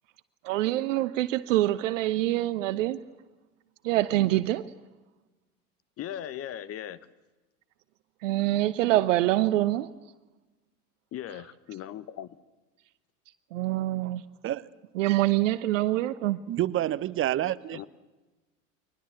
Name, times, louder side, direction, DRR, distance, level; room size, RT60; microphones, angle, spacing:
voice 1, 0.4-3.0 3.8-4.7 8.2-9.9 13.5-14.2 14.9-16.4, right 15 dB, 55° right, 1.0 m, -25 dB
voice 2, 6.0-7.0 11.1-12.3 17.7-17.9, left 11 dB, 30° left, 1.1 m, -38 dB
voice 3, 16.5-17.9, right 13 dB, 30° right, 0.9 m, -28 dB
30.0 x 23.0 x 7.1 m
figure-of-eight pair, 75°, 45 cm